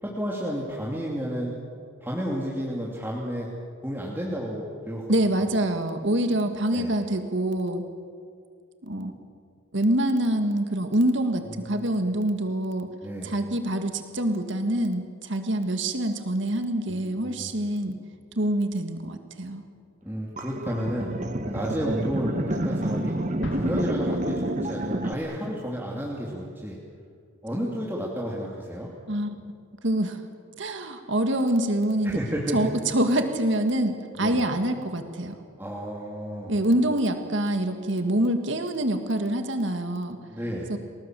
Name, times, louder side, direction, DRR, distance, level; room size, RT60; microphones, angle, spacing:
voice 1, 0.0-1.5 2.0-3.5 3.8-5.1 5.4-5.5 6.7-6.9 11.5-11.8 13.0-13.3 16.9-17.5 20.0-21.1 21.5-23.2 23.5-26.8 27.4-28.9 32.0-32.7 34.2-34.4 35.6-36.6 40.3-40.7, equal, 10° right, -4 dB, 2.7 m, -31 dB
voice 2, 5.1-7.8 8.8-9.1 9.7-12.9 13.2-18.0 18.4-19.6 29.1-29.4 29.8-30.2 30.6-32.2 32.5-35.4 36.5-40.2 40.7-40.8, right 1 dB, 60° right, 6 dB, 1.9 m, -25 dB
sound 1, 20.4-25.1, right 1 dB, 35° right, 1.1 m, -29 dB
Explosion, 23.4-25.1, equal, 60° left, 2.2 m, -40 dB
30.0 x 19.0 x 7.6 m, 2.2 s
head